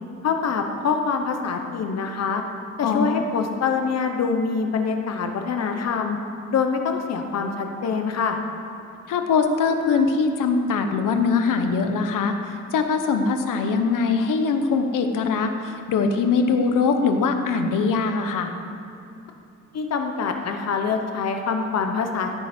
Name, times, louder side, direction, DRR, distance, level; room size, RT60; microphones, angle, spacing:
voice 1, 0.2-2.4 2.8-6.2 6.5-8.4 19.7-22.4, left 5 dB, 55° left, 4 dB, 1.0 m, -25 dB
voice 2, 2.8-3.2 9.1-12.3 12.7-18.5, left 4 dB, 85° left, 6 dB, 1.1 m, -22 dB
16.0 x 9.5 x 4.5 m, 2.8 s
wide cardioid pair, 175°, 31 cm